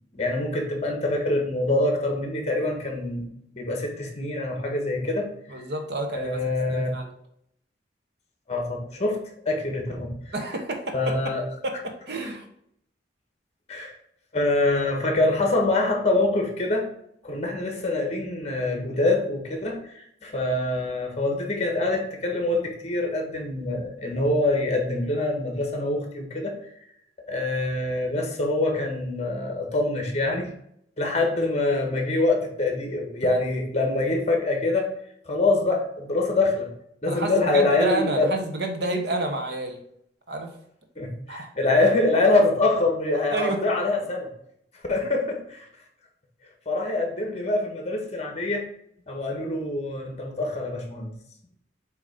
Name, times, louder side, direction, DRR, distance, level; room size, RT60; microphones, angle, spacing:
voice 1, 0.1-3.2 3.5-5.6 6.1-6.9 8.5-9.2 9.4-10.1 10.9-11.4 13.7-13.9 14.3-16.9 17.2-26.5 27.3-30.5 31.0-34.9 35.2-36.7 37.0-38.3 41.0-44.3 44.9-45.7 46.6-48.6 49.1-51.1, left 2 dB, 40° left, 2 dB, 1.4 m, -25 dB
voice 2, 5.5-6.4 6.7-7.1 10.3-11.3 11.6-12.4 37.0-39.8 40.3-40.5 41.3-41.5 43.3-43.6, right 2 dB, 65° right, 4 dB, 1.1 m, -29 dB
7.3 x 3.1 x 5.1 m, 0.70 s
head